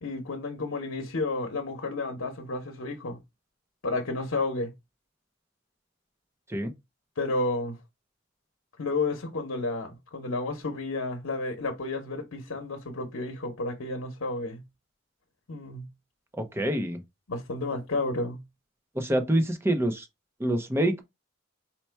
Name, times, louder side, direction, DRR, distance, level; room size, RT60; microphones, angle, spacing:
voice 1, 0.0-3.2 3.8-4.7 7.2-7.8 8.8-14.6 15.5-15.9 17.3-18.4, left 2 dB, 85° left, 0.8 m, -31 dB
voice 2, 16.4-17.0 18.9-20.1 20.4-21.0, right 1 dB, 10° right, 0.6 m, -26 dB
4.3 x 2.2 x 4.4 m
head